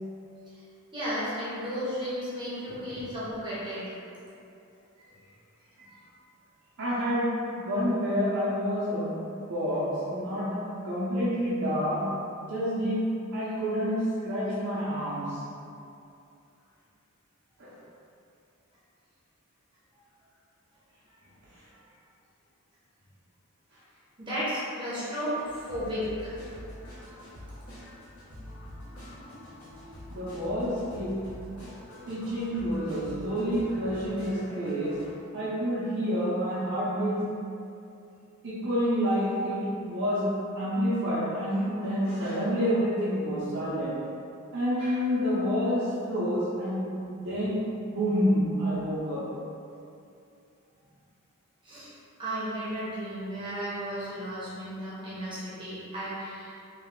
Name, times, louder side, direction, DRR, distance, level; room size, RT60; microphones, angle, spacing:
voice 1, 0.9-3.9 5.0-5.1 5.9-6.0 24.2-26.4 51.6-51.9 52.2-56.5, equal, 20° right, -10 dB, 1.0 m, -34 dB
voice 2, 6.8-9.2 9.5-12.2 12.5-15.4 17.6-17.7 30.1-31.3 32.1-35.0 35.3-37.4 38.4-44.0 44.5-47.6 47.9-49.3, equal, 60° right, -9 dB, 0.8 m, -28 dB
sound 1, 25.3-35.1, left 1 dB, 75° left, 1.3 m, -45 dB
3.2 x 2.8 x 3.6 m, 2.6 s
head